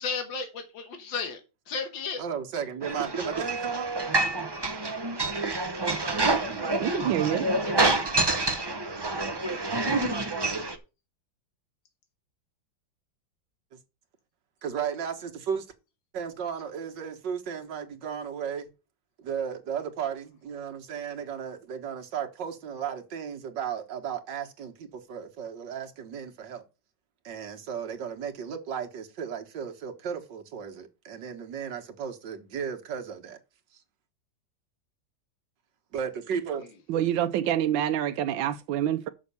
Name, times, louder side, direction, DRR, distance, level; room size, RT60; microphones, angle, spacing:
voice 1, 0.0-1.4 1.7-2.2 7.6-8.0, left 5 dB, 85° left, 2.0 m, -34 dB
voice 2, 2.2-3.9 14.6-15.7 16.1-18.7 19.2-26.6 27.2-33.4 33.7-33.8 35.9-36.7, right 7 dB, 70° right, 1.9 m, -35 dB
sound 1, 2.8-10.8, right 2 dB, 30° right, 0.4 m, -27 dB
voice 3, 6.8-7.5 36.9-39.1, right 11 dB, 90° right, 1.4 m, -26 dB
6.3 x 6.2 x 6.9 m
omnidirectional pair, 2.0 m